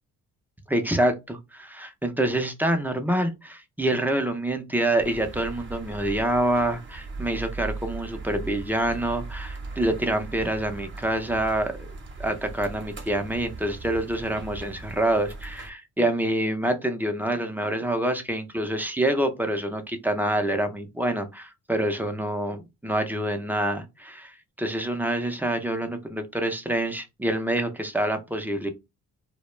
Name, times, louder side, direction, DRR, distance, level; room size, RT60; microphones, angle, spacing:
voice 1, 0.7-11.9 12.2-28.7, right 1 dB, 5° right, 0.5 m, -26 dB
sound 1, 5.0-15.7, right 3 dB, 35° right, 0.8 m, -39 dB
2.3 x 2.1 x 3.0 m
cardioid pair, 100°, 33 cm